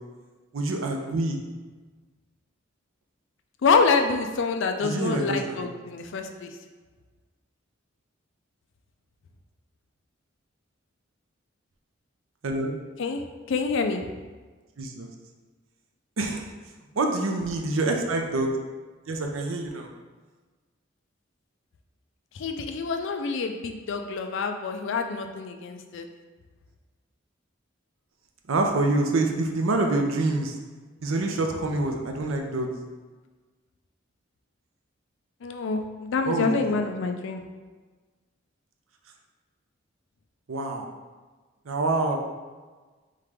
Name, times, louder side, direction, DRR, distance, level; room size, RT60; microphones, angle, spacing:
voice 1, 0.5-1.4 4.8-5.6 12.4-12.7 14.8-15.1 16.2-16.5 17.0-18.5 19.1-19.9 28.5-30.5 31.0-32.7 36.2-36.5 40.5-40.9 41.7-42.2, right 2 dB, 85° right, 3 dB, 0.6 m, -26 dB
voice 2, 3.6-6.5 13.0-14.1 22.3-26.1 35.4-37.4, left 4 dB, 65° left, 5 dB, 0.4 m, -26 dB
3.7 x 3.2 x 3.4 m, 1.3 s
head